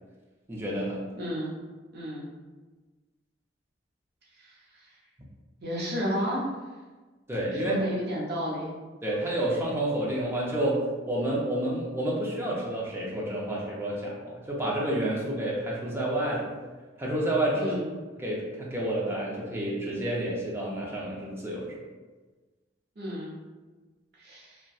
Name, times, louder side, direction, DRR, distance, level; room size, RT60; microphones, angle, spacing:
voice 1, 0.5-1.0 7.3-7.9 9.0-16.5 17.0-17.7 18.2-21.8, right 1 dB, 15° right, -4 dB, 0.5 m, -29 dB
voice 2, 1.2-1.6 1.9-2.3 4.4-4.6 5.6-6.5 7.5-8.7 17.5-17.9 23.0-23.3 24.2-24.6, equal, 60° right, -5 dB, 0.7 m, -32 dB
2.6 x 2.2 x 2.3 m, 1.3 s
head